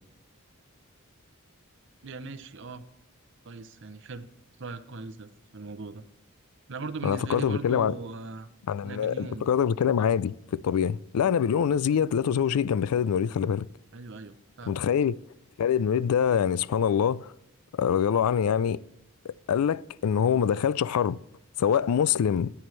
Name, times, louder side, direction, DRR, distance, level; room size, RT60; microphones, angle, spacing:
voice 1, 2.0-2.8 3.4-4.3 4.6-6.1 6.7-8.5 8.8-9.5 13.9-14.8, right 3 dB, 55° right, 0.7 m, -39 dB
voice 2, 7.0-7.9 8.7-13.7 14.7-15.1 15.6-17.3 17.8-18.8 19.3-21.2 21.6-22.5, left 8 dB, 85° left, 0.3 m, -25 dB
13.0 x 8.6 x 3.2 m
head